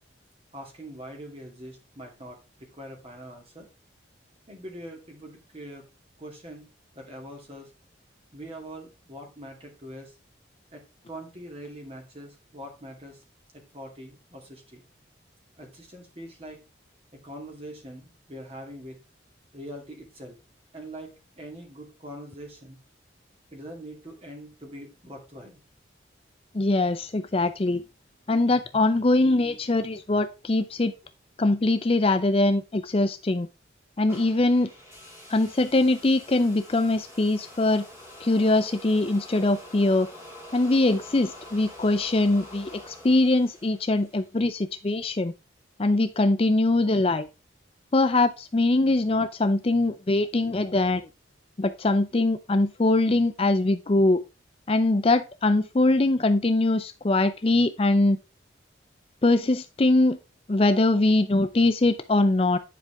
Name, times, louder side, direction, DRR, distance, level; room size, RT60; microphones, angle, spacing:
voice 1, 0.5-3.7 4.5-5.8 6.2-6.7 6.9-7.7 8.3-10.1 10.7-13.2 13.5-14.8 15.6-16.6 17.1-19.0 19.5-20.4 20.7-22.8 23.5-25.6 27.3-27.5, right 1 dB, 30° right, 2.5 m, -43 dB
voice 2, 26.5-27.8 28.3-30.9 31.4-33.5 34.0-34.7 35.3-37.8 38.2-40.1 40.5-45.3 45.8-47.3 47.9-51.0 51.6-54.2 54.7-58.2 59.2-60.2 60.5-62.6, left 2 dB, 30° left, 0.5 m, -22 dB
sound 1, 34.1-44.3, left 1 dB, 15° right, 3.2 m, -46 dB
10.0 x 5.1 x 3.4 m
head